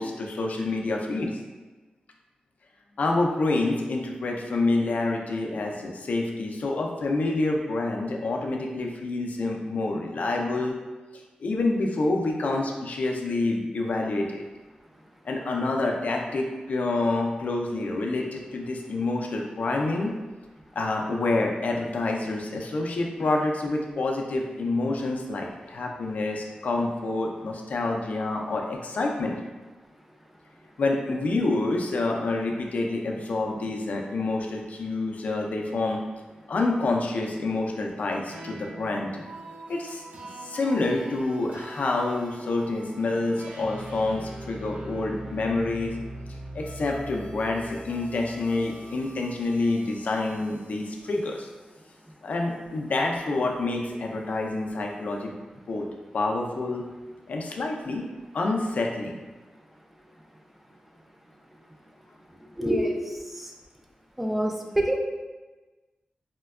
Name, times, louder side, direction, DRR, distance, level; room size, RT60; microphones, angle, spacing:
voice 1, 0.0-1.4 3.0-10.8 11.4-14.4 15.2-20.1 20.8-29.4 30.8-36.0 36.5-39.3 39.7-40.0 40.4-46.0 46.5-51.5 52.2-55.3 55.7-55.9 56.1-56.8 57.3-58.1 58.3-59.2, left 2 dB, 65° left, 1 dB, 0.4 m, -27 dB
sound 1, 38.3-50.8, right 1 dB, 65° right, 0.5 m, -42 dB
voice 2, 62.5-63.5 64.2-65.0, right 1 dB, 5° right, 2 dB, 0.3 m, -27 dB
4.2 x 2.2 x 2.3 m, 1.2 s
wide cardioid pair, 145°, 3 cm